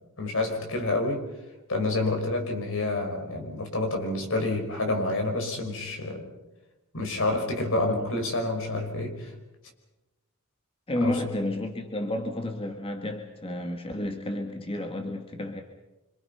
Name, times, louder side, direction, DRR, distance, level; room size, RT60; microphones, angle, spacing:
voice 1, 0.2-1.3 1.7-6.3 6.9-9.3 11.0-11.2, left 2 dB, 65° left, 4 dB, 5.5 m, -28 dB
voice 2, 10.9-15.6, left 1 dB, 25° left, 4 dB, 1.9 m, -31 dB
27.0 x 26.5 x 5.8 m, 1.0 s
head